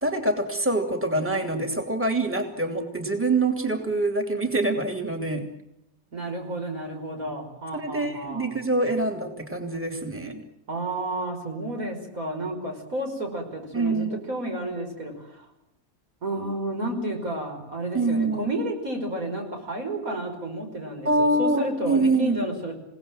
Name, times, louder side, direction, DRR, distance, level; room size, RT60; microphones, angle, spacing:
voice 1, 0.0-5.5 7.7-10.4 13.7-14.2 17.9-18.5 21.0-22.4, right 2 dB, 10° right, 4 dB, 2.9 m, -25 dB
voice 2, 6.1-8.6 10.7-15.5 16.2-22.7, right 1 dB, 80° right, 3 dB, 5.9 m, -31 dB
27.5 x 18.0 x 7.7 m, 0.84 s
omnidirectional pair, 1.5 m